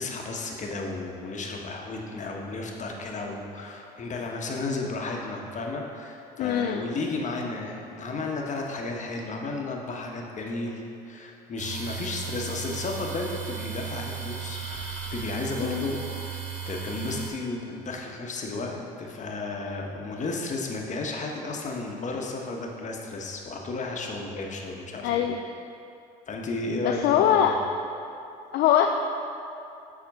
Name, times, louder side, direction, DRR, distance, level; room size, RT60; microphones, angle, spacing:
voice 1, 0.0-16.4 16.6-25.2 26.3-27.4, left 3 dB, 35° left, 0 dB, 1.2 m, -33 dB
voice 2, 6.4-6.8 15.6-15.9 25.0-25.4 26.8-27.6 28.5-28.9, left 10 dB, 55° left, 4 dB, 0.5 m, -22 dB
sound 1, 11.6-17.3, right 7 dB, 65° right, 1.5 m, -35 dB
7.6 x 4.3 x 5.4 m, 2.7 s
hypercardioid pair, 70°, 20 cm